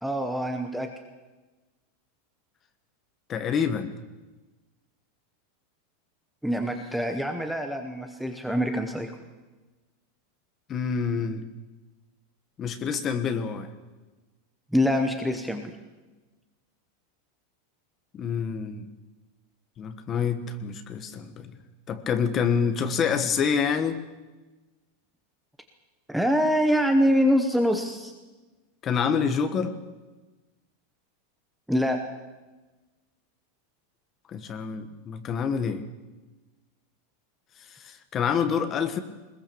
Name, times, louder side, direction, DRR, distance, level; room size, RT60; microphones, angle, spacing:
voice 1, 0.0-0.9 6.4-9.1 14.7-15.8 26.1-28.1 31.7-32.0, equal, ahead, 5 dB, 0.9 m, -25 dB
voice 2, 3.3-3.9 10.7-11.4 12.6-13.7 18.1-18.8 19.8-21.6 21.9-24.0 28.8-29.8 34.3-35.8 37.6-39.0, left 6 dB, 20° left, 9 dB, 1.3 m, -27 dB
21.0 x 21.0 x 7.0 m, 1.2 s
supercardioid pair, 180°, 0 cm